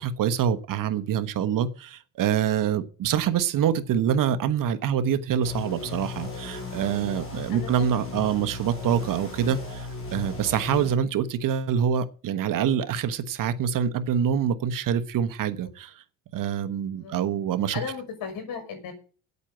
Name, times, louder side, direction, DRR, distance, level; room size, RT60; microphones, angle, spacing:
voice 1, 0.0-16.0 16.3-17.8, right 8 dB, 55° right, 12 dB, 1.2 m, -26 dB
sound 1, 5.4-10.9, left 3 dB, 30° left, 6.5 m, -36 dB
voice 2, 17.7-18.9, left 6 dB, 55° left, 6 dB, 6.0 m, -35 dB
9.0 x 8.4 x 9.0 m, 0.38 s
cardioid pair, 125°, 40 cm